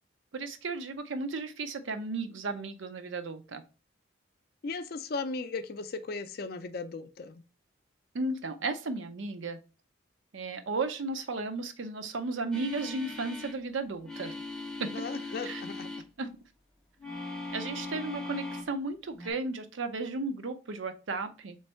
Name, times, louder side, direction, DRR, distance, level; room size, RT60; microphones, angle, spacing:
voice 1, 0.3-3.6 8.1-9.6 10.3-14.4 14.8-14.9 15.4-15.6 16.2-16.3 17.5-21.6, right 3 dB, 75° right, 0.6 m, -34 dB
voice 2, 4.6-7.4 14.9-15.9, left 4 dB, 50° left, 0.4 m, -37 dB
sound 1, 12.5-13.6 14.0-16.1 17.0-18.7 19.2-19.3, left 2 dB, 5° left, 0.6 m, -40 dB
3.5 x 3.2 x 4.3 m
head